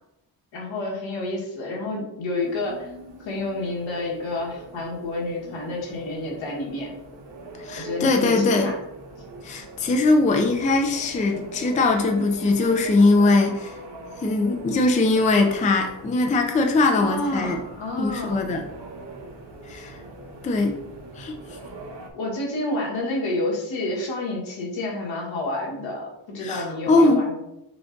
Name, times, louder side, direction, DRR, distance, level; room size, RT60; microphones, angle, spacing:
voice 1, 0.5-2.9 3.2-6.9 7.7-8.8 16.9-18.4 22.1-27.4, left 2 dB, 80° left, -3 dB, 1.6 m, -29 dB
sound 1, 2.4-22.1, right 2 dB, 70° right, 1.1 m, -43 dB
voice 2, 7.6-8.7 9.4-13.7 14.2-17.6 18.0-18.6 19.7-20.0 20.4-20.8 21.2-21.4 26.4-27.3, left 3 dB, 20° left, 3 dB, 0.4 m, -21 dB
5.9 x 2.4 x 3.8 m, 0.85 s
wide cardioid pair, 175°, 44 cm